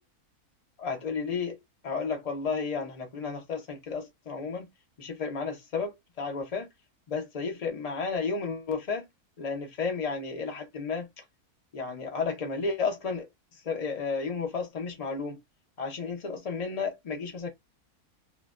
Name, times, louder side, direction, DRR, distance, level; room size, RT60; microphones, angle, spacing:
voice 1, 0.8-1.6 1.8-4.7 5.0-6.7 7.1-9.1 9.4-11.1 11.7-13.3 13.6-15.4 15.8-17.5, left 5 dB, 80° left, 0.3 m, -32 dB
3.0 x 2.1 x 2.4 m
omnidirectional pair, 1.6 m